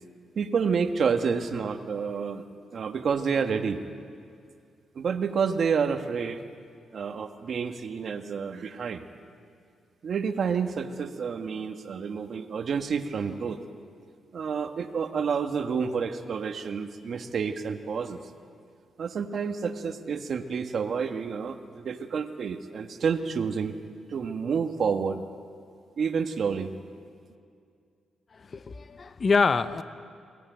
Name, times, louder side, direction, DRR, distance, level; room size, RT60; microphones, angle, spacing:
voice 1, 0.3-2.4 2.7-3.8 4.9-6.4 6.9-9.0 10.0-13.6 14.3-18.2 19.0-23.7 24.1-25.2 26.0-26.7, right 6 dB, 55° right, 7 dB, 1.4 m, -29 dB
voice 2, 28.3-29.8, left 4 dB, 35° left, 12 dB, 0.8 m, -25 dB
22.5 x 17.0 x 9.2 m, 2.3 s
cardioid pair, 115°, 0 cm